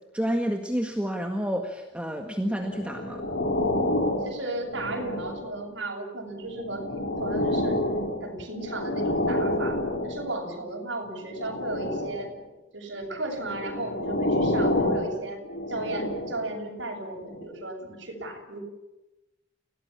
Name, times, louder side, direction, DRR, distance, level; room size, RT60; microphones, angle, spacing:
voice 1, 0.1-3.2, equal, 5° right, 2 dB, 1.8 m, -29 dB
sound 1, 2.6-5.7 6.3-10.5 11.3-12.4 13.2-16.6 17.3-17.4, left 1 dB, 65° left, 4.2 m, -29 dB
voice 2, 4.2-7.8 8.2-12.3 12.7-15.4 15.7-18.6, right 2 dB, 65° right, 0 dB, 7.2 m, -35 dB
30.0 x 18.0 x 7.3 m, 0.98 s
head